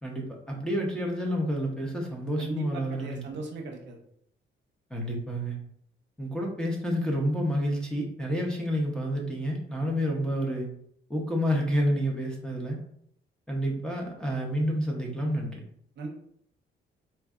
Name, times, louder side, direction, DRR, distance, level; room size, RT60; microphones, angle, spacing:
voice 1, 0.0-3.4 4.9-5.6 6.2-10.7 11.1-12.8 13.5-15.6, equal, 5° left, -2 dB, 0.6 m, -29 dB
voice 2, 2.4-4.0 16.0-16.1, right 3 dB, 60° right, 1 dB, 0.7 m, -37 dB
4.2 x 2.6 x 2.3 m, 0.68 s
cardioid pair, 130°, 21 cm